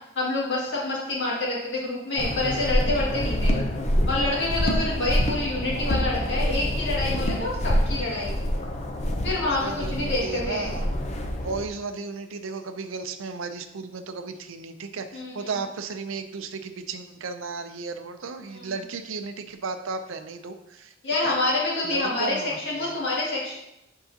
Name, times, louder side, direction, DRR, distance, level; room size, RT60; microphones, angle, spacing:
voice 1, 0.2-3.5 4.1-8.4 9.2-10.7 15.1-15.5 18.5-18.7 21.0-23.5, left 2 dB, 60° left, -6 dB, 2.2 m, -27 dB
sound 1, 2.2-11.7, equal, 35° left, 0.6 m, -26 dB
voice 2, 9.3-10.9 11.3-20.9 21.2-21.4 21.8-22.9, right 4 dB, 85° right, 8 dB, 0.5 m, -34 dB
8.0 x 4.7 x 2.8 m, 0.86 s
head